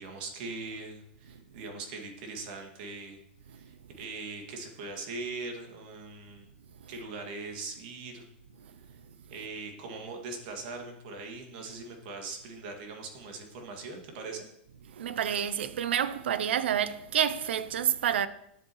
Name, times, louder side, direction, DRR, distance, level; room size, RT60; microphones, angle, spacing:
voice 1, 0.0-3.2 3.5-6.5 6.9-8.2 8.9-9.0 9.3-14.5, right 3 dB, 55° right, 2.1 m, -41 dB
voice 2, 15.0-18.3, right 9 dB, 80° right, 0.6 m, -28 dB
10.0 x 7.6 x 3.1 m
supercardioid pair, 140°, 6 cm